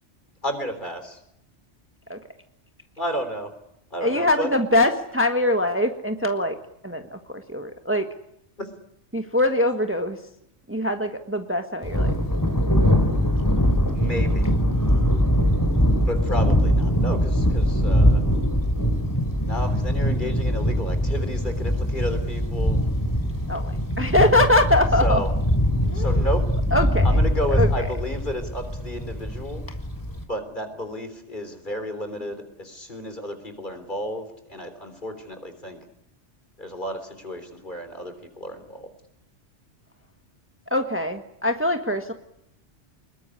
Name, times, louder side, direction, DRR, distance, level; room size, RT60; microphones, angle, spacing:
voice 1, 0.4-1.2 3.0-3.5 3.9-4.5 8.6-8.7 13.9-14.5 16.1-18.2 19.4-22.8 25.0-25.3 25.9-26.4 27.0-29.6 30.3-35.8 36.6-38.9, equal, 45° left, 8 dB, 3.8 m, -32 dB
voice 2, 4.0-6.6 6.8-8.1 9.1-10.2 10.7-12.1 23.5-25.2 25.9-26.3 26.7-27.2 27.6-27.9 40.7-42.1, left 1 dB, 10° right, 6 dB, 1.4 m, -23 dB
Thunder, 11.8-30.2, equal, 15° left, 3.2 m, -22 dB
25.0 x 21.5 x 9.9 m, 0.78 s
omnidirectional pair, 1.2 m